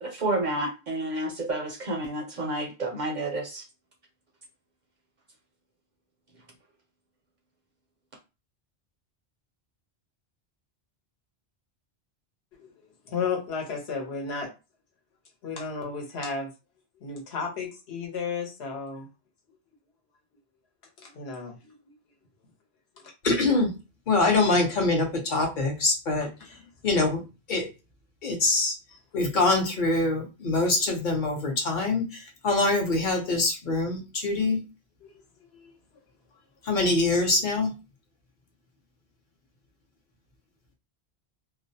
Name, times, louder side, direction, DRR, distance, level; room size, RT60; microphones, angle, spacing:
voice 1, 0.0-3.6, right 2 dB, 55° right, 2 dB, 0.5 m, -30 dB
voice 2, 13.1-14.5 15.4-16.5 17.0-19.1 21.0-22.0 35.0-35.1 35.5-35.7, left 5 dB, 80° left, 1 dB, 1.0 m, -33 dB
voice 3, 23.2-23.7 24.1-26.3 26.8-27.2 27.5-27.7 28.2-28.8 29.1-34.6 36.6-37.7, left 2 dB, 55° left, 1 dB, 0.8 m, -24 dB
2.3 x 2.1 x 2.6 m, 0.29 s
omnidirectional pair, 1.1 m